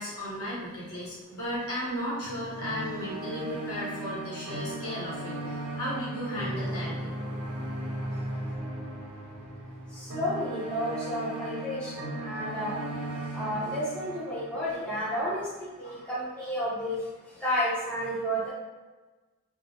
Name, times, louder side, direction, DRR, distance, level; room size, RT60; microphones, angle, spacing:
voice 1, 0.0-7.2, equal, 85° left, -8 dB, 1.0 m, -35 dB
sound 1, 2.2-15.4, right 1 dB, 85° right, 0.6 m, -37 dB
voice 2, 10.0-11.9 12.2-12.7 13.3-17.0 17.4-18.5, equal, 5° left, -10 dB, 0.6 m, -31 dB
2.2 x 2.1 x 2.7 m, 1.2 s
head